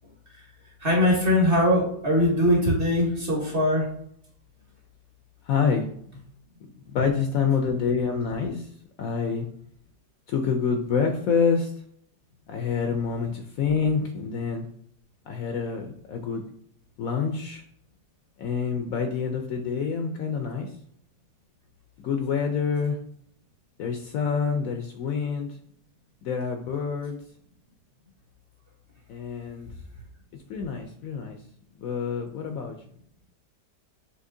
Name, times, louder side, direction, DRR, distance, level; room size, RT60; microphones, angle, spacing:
voice 1, 0.8-3.9, left 1 dB, 40° right, -2 dB, 1.3 m, -21 dB
voice 2, 5.4-5.9 6.9-8.7 9.0-9.5 10.3-11.7 12.5-14.7 15.3-16.5 17.0-17.6 18.4-20.7 22.0-23.0 23.8-25.6 26.2-27.2 29.1-29.7 30.5-31.4 31.8-32.8, left 6 dB, 70° left, 4 dB, 0.9 m, -27 dB
6.4 x 2.8 x 2.6 m, 0.65 s
omnidirectional pair, 1.8 m